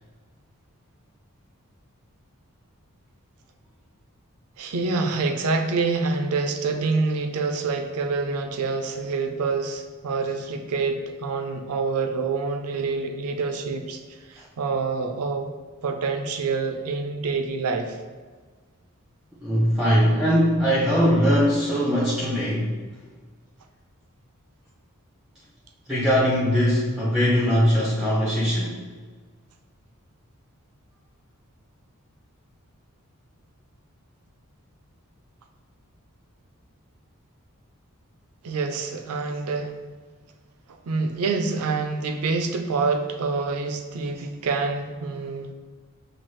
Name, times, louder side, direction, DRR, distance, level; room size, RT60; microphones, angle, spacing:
voice 1, 4.6-15.5 15.8-18.0 38.4-39.8 40.7-45.5, right 4 dB, 85° right, 6 dB, 0.5 m, -27 dB
voice 2, 19.4-22.8 25.9-28.8, equal, 5° right, -7 dB, 0.6 m, -21 dB
5.9 x 2.4 x 3.1 m, 1.4 s
head